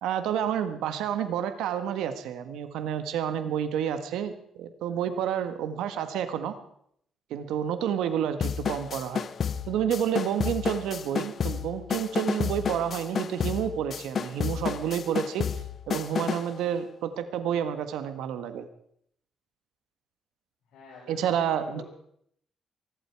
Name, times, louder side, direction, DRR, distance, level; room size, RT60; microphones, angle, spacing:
voice 1, 0.0-6.5 7.3-9.3 9.7-15.4 15.9-18.7 21.1-21.8, right 9 dB, 90° right, 9 dB, 1.6 m, -29 dB
sound 1, 8.4-16.5, left 7 dB, 50° left, 0.8 m, -31 dB
voice 2, 20.7-21.8, left 3 dB, 80° left, -5 dB, 5.6 m, -47 dB
23.0 x 12.0 x 4.8 m, 0.69 s
cardioid pair, 90°, 0 cm